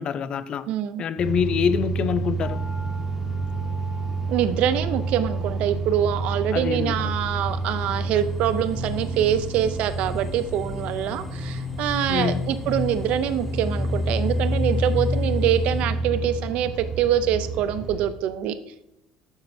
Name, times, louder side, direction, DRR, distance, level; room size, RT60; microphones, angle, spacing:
voice 1, 0.0-0.7 1.0-2.6 6.5-7.1 12.1-12.5, left 7 dB, 45° left, 0.4 m, -26 dB
voice 2, 0.7-1.0 4.3-16.7 17.0-18.5, right 10 dB, 65° right, 0.4 m, -24 dB
Car start and drive interior vintage MG convertable, 1.2-18.1, right 1 dB, 15° right, 1.5 m, -29 dB
sound 1, 2.4-14.7 14.9-15.0, left 1 dB, 80° left, 1.7 m, -49 dB
sound 2, 7.4-15.8, left 2 dB, 5° left, 1.0 m, -34 dB
7.4 x 6.0 x 2.6 m
cardioid pair, 120°, 2 cm